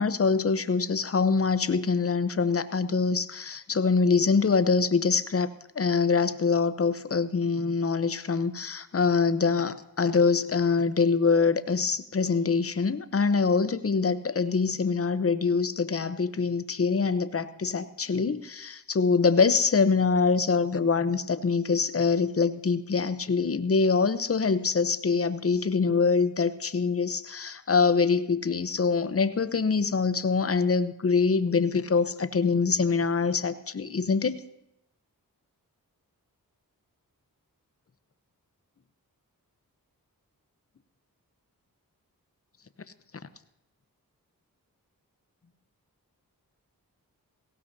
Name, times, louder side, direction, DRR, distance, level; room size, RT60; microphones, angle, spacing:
voice 1, 0.0-5.5 5.8-34.4, left 5 dB, 40° left, 12 dB, 0.8 m, -24 dB
18.0 x 16.5 x 2.8 m, 0.82 s
cardioid pair, 45°, 36 cm